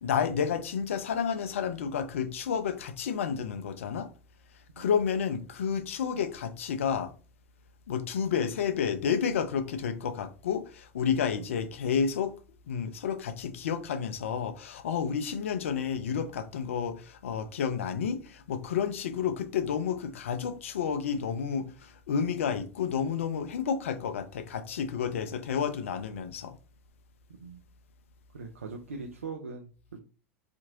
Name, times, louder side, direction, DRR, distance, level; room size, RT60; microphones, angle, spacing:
voice 1, 0.0-4.1 4.8-7.1 7.9-12.4 12.7-26.5, left 7 dB, 75° left, 0.4 m, -30 dB
voice 2, 27.3-27.6 28.3-30.0, right 4 dB, 85° right, 0.4 m, -41 dB
2.7 x 2.5 x 2.7 m
figure-of-eight pair, 80°, 7 cm